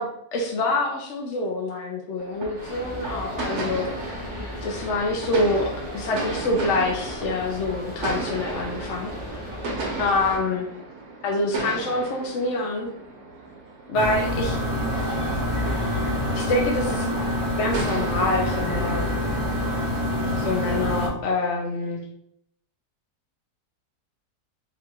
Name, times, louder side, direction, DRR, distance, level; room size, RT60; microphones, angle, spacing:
voice 1, 0.0-3.9 4.6-9.5 10.0-10.7 11.2-12.9 13.9-14.6 16.3-17.1 17.6-19.1 20.4-22.0, left 2 dB, 60° left, 0 dB, 0.8 m, -26 dB
sound 1, 2.2-19.1, right 3 dB, 80° right, 1.3 m, -35 dB
sound 2, 2.5-10.4, left 1 dB, 45° right, 0.4 m, -36 dB
sound 3, 13.9-21.1, left 1 dB, 25° left, 1.0 m, -26 dB
3.8 x 2.3 x 4.2 m, 0.71 s
omnidirectional pair, 1.6 m